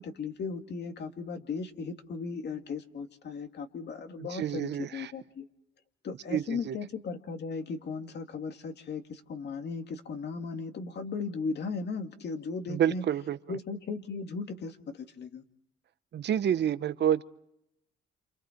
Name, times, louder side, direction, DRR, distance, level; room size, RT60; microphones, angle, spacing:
voice 1, 0.0-5.5 6.0-13.0 13.5-15.4, left 4 dB, 60° left, 6 dB, 2.4 m, -37 dB
voice 2, 4.2-5.1 6.3-6.8 12.7-13.6 16.1-17.2, right 10 dB, 60° right, 14 dB, 1.0 m, -29 dB
29.0 x 27.5 x 4.6 m, 0.78 s
cardioid pair, 90°, 20 cm